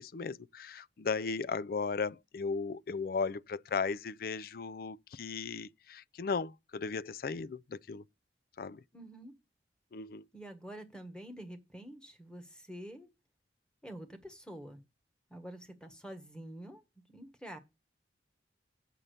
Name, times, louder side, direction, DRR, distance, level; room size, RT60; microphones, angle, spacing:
voice 1, 0.0-8.0 8.6-8.8 9.9-10.3, left 5 dB, 55° left, 0.4 m, -36 dB
voice 2, 8.9-9.4 10.3-13.1 13.8-14.8 15.3-17.6, right 1 dB, 5° left, 1.4 m, -47 dB
7.4 x 5.4 x 6.6 m
head